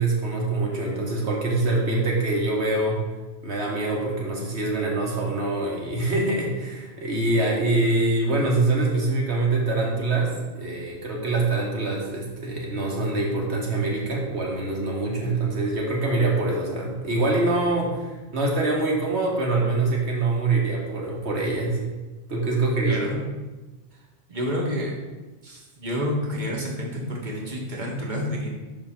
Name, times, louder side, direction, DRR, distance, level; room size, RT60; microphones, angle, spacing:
voice 1, 0.0-3.0 3.4-18.0 18.3-21.8 22.3-23.0, right 2 dB, 60° right, -1 dB, 1.5 m, -24 dB
voice 2, 22.8-23.2 23.9-24.9 25.4-28.5, equal, 40° right, -2 dB, 1.4 m, -29 dB
5.5 x 4.0 x 5.7 m, 1.2 s
omnidirectional pair, 1.3 m